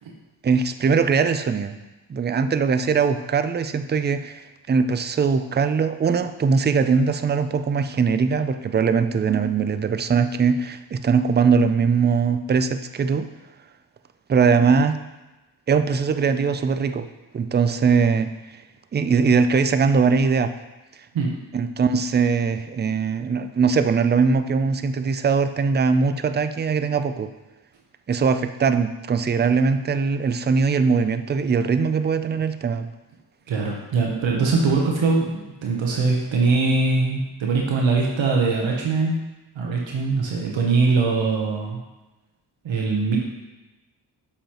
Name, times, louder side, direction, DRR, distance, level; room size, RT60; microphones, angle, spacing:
voice 1, 0.4-1.8 2.1-13.3 14.3-15.0 15.7-17.1 17.3-18.3 18.9-20.5 21.5-27.3 28.1-32.9, right 5 dB, 25° right, 10 dB, 0.4 m, -21 dB
voice 2, 33.5-39.2 39.6-41.8 42.6-43.2, right 4 dB, 80° right, -1 dB, 1.0 m, -22 dB
7.0 x 5.0 x 3.0 m, 1.1 s
cardioid pair, 55°, 46 cm